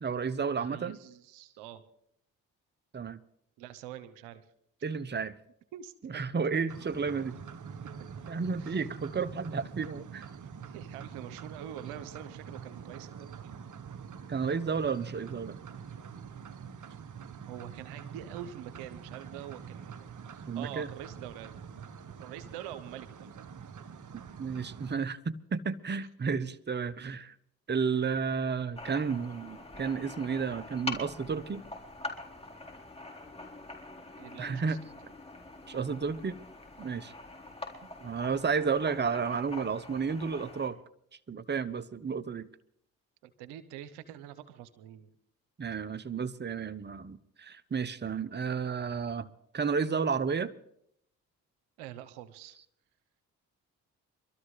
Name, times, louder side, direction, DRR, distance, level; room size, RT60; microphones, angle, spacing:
voice 1, 0.0-1.0 2.9-3.2 4.8-5.3 6.0-7.4 8.3-10.3 14.3-15.6 20.5-20.9 24.1-27.3 27.7-31.6 34.4-34.8 35.7-36.4 36.8-37.1 38.0-40.8 41.3-42.5 45.6-49.3 49.5-50.5, right 5 dB, 25° right, 16 dB, 0.9 m, -32 dB
voice 2, 0.6-1.8 3.6-4.4 5.7-6.2 8.5-8.8 9.4-9.5 10.6-13.6 17.4-21.5 22.2-23.5 27.0-27.1 34.2-35.1 43.2-45.1 51.8-52.6, right 11 dB, 80° right, 13 dB, 0.9 m, -45 dB
sound 1, 6.7-25.0, right 6 dB, 50° right, 1.1 m, -45 dB
sound 2, 28.8-40.7, left 2 dB, 15° left, 4.0 m, -44 dB
25.5 x 13.0 x 3.2 m, 0.71 s
hypercardioid pair, 45°, 40 cm